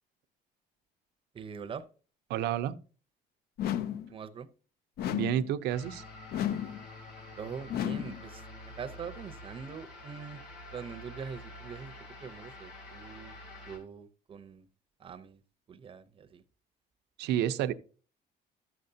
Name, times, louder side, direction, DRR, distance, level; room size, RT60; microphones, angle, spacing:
voice 1, 1.3-1.9 4.1-4.5 7.3-8.5 8.8-10.4 10.7-11.9 12.2-13.4 13.7-14.7 15.0-15.4 15.7-16.4, right 6 dB, 30° right, 0.6 m, -43 dB
voice 2, 2.3-2.8 5.1-6.0 17.2-17.7, right 11 dB, 80° right, 0.6 m, -30 dB
sound 1, 3.6-4.1 5.0-5.5 6.3-6.8 7.7-8.2, left 10 dB, 65° left, 0.5 m, -33 dB
sound 2, 5.7-13.8, left 1 dB, 85° left, 2.9 m, -48 dB
12.5 x 6.7 x 2.7 m
cardioid pair, 110°, 17 cm